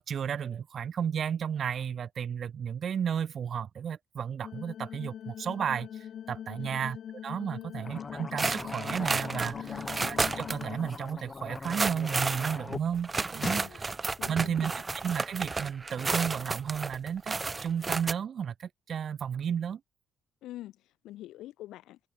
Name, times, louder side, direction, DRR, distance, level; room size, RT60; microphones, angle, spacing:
voice 1, 0.0-5.9 6.3-7.0 7.2-9.6 10.0-13.6 14.3-14.7 15.0-19.8, right 8 dB, 55° right, 1.8 m, -33 dB
sound 1, 4.4-10.9, left 9 dB, 65° left, 1.4 m, -42 dB
voice 2, 6.5-6.9 7.5-7.7 9.6-9.9 13.5-13.8 14.2-14.7 20.4-22.0, left 15 dB, 90° left, 6.1 m, -45 dB
sound 2, 7.8-12.8 13.1-13.7, left 4 dB, 30° left, 5.4 m, -41 dB
sound 3, 8.4-10.7 10.9-11.0 11.6-18.1, right 3 dB, 25° right, 0.7 m, -32 dB
cardioid pair, 90°, 0 cm